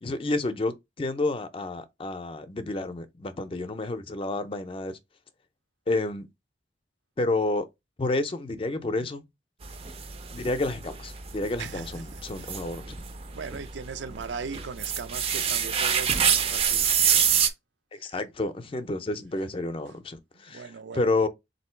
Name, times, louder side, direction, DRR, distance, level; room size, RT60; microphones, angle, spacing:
voice 1, 0.0-5.0 5.9-6.3 7.2-7.7 8.0-9.2 10.3-12.9 17.9-20.7 20.9-21.3, left 2 dB, 30° left, 0.5 m, -30 dB
sound 1, 9.6-17.5, right 8 dB, 35° right, 0.4 m, -27 dB
voice 2, 11.6-12.5 13.3-17.4 18.0-18.1 20.5-21.3, right 5 dB, 85° right, 0.5 m, -39 dB
3.6 x 2.7 x 4.3 m
head